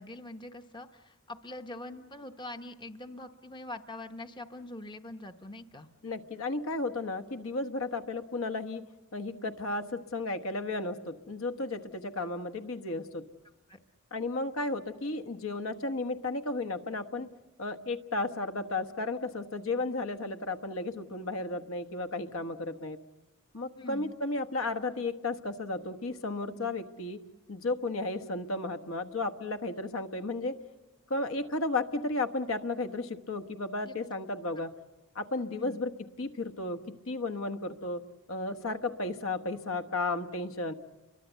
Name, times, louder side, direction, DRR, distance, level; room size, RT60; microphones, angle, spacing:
voice 1, 0.0-5.9 13.7-13.8 23.8-24.1 33.9-34.0 35.5-35.8, left 1 dB, 20° left, 7 dB, 0.8 m, -43 dB
voice 2, 6.0-8.8 9.1-13.3 14.1-17.3 17.6-23.0 23.5-27.2 27.5-30.6 31.1-34.7 35.1-35.9 36.2-38.0 38.3-40.7, left 2 dB, 70° left, 7 dB, 1.2 m, -33 dB
30.0 x 23.5 x 8.1 m, 1.1 s
head